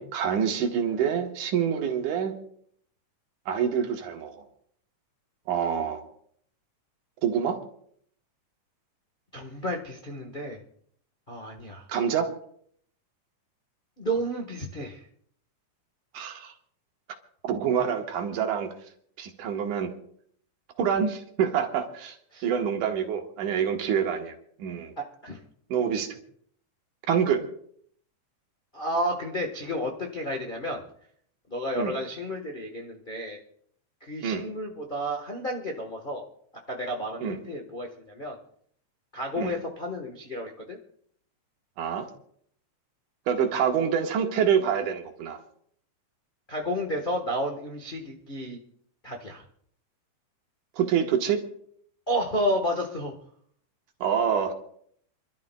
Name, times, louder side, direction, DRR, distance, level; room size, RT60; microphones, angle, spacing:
voice 1, 0.0-2.3 3.5-4.4 5.5-6.0 7.2-7.6 11.9-12.3 16.1-16.5 17.4-18.7 19.2-19.9 20.8-22.2 22.4-24.9 25.7-26.2 27.1-27.5 31.8-31.9 34.2-34.4 37.2-37.4 39.4-39.5 41.8-42.1 43.3-45.4 50.8-51.4 54.0-54.5, right 7 dB, 85° right, 4 dB, 2.9 m, -26 dB
voice 2, 9.3-10.6 11.3-11.9 14.0-15.0 22.3-22.5 25.0-25.4 28.7-30.8 31.5-33.4 34.0-36.2 36.7-38.4 39.1-40.8 46.5-48.6 49.0-49.4 52.1-53.1, equal, 85° left, 0 dB, 0.4 m, -31 dB
28.0 x 12.5 x 2.3 m, 0.64 s
omnidirectional pair, 3.5 m